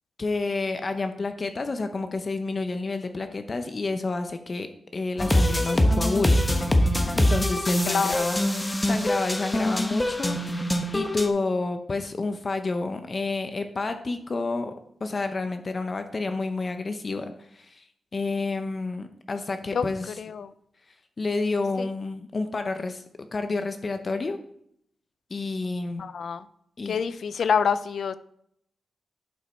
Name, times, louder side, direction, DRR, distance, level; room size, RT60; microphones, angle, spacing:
voice 1, 0.2-4.7 4.9-6.4 7.2-14.7 15.0-17.8 18.1-20.2 21.2-24.4 25.3-26.0 26.8-27.0, left 3 dB, 40° left, 7 dB, 0.8 m, -29 dB
sound 1, 5.2-11.3, left 1 dB, 20° left, 1.1 m, -24 dB
voice 2, 7.9-8.3 19.7-19.9 20.2-20.5 21.8-21.9 26.0-26.5 26.9-28.1, left 6 dB, 75° left, 14 dB, 0.5 m, -26 dB
11.0 x 5.2 x 4.4 m, 0.70 s
cardioid pair, 85°, 0 cm